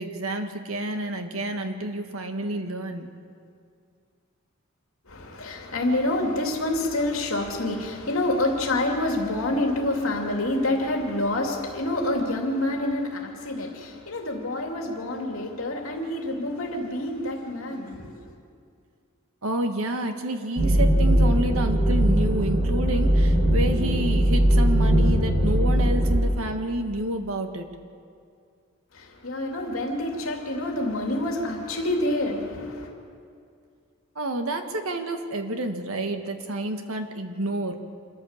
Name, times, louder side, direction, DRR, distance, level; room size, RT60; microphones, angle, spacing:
voice 1, 0.0-3.1 19.4-27.7 34.2-37.7, right 1 dB, 80° right, 1.7 m, -29 dB
voice 2, 5.1-18.2 28.9-32.9, left 1 dB, 75° left, 2.6 m, -27 dB
sound 1, 20.6-26.2, equal, 45° right, 4.5 m, -20 dB
26.5 x 14.0 x 7.3 m
head